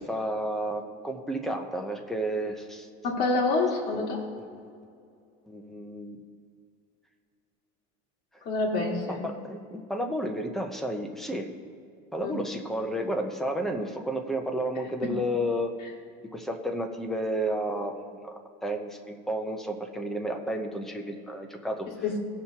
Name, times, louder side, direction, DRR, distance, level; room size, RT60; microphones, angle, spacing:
voice 1, 0.0-2.9 3.9-4.1 4.4-4.6 5.5-6.2 8.3-8.4 9.1-11.5 12.1-15.7 16.3-21.9, right 1 dB, ahead, 2 dB, 0.6 m, -32 dB
voice 2, 3.0-4.2 8.5-9.2 12.2-12.3 15.0-15.1 22.0-22.2, left 3 dB, 45° left, -1 dB, 1.8 m, -27 dB
17.5 x 5.9 x 2.8 m, 2.3 s
cardioid pair, 165°, 21 cm